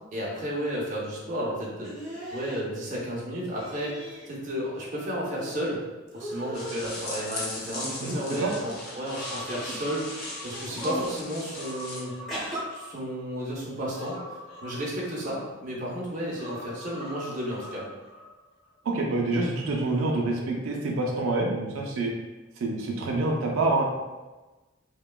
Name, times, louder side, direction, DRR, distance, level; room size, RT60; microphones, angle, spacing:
voice 1, 0.1-1.9 2.3-5.8 6.1-12.1 12.7-17.9, equal, 40° right, -5 dB, 0.6 m, -33 dB
sound 1, 1.8-2.6 3.5-4.3 4.6-5.7 6.1-6.8 7.6-8.6 9.4-9.7 10.5-11.1 12.3-12.6, right 1 dB, ahead, 0.8 m, -38 dB
sound 2, 6.5-12.0, left 1 dB, 45° left, 0.6 m, -38 dB
Human voice, 9.1-10.9 11.3-13.3 14.0-15.7 16.4-18.3 18.6-18.7, left 1 dB, 85° left, 0.8 m, -43 dB
voice 2, 18.8-22.1 22.6-23.8, right 2 dB, 85° right, -1 dB, 0.4 m, -26 dB
2.9 x 2.1 x 2.2 m, 1.2 s
head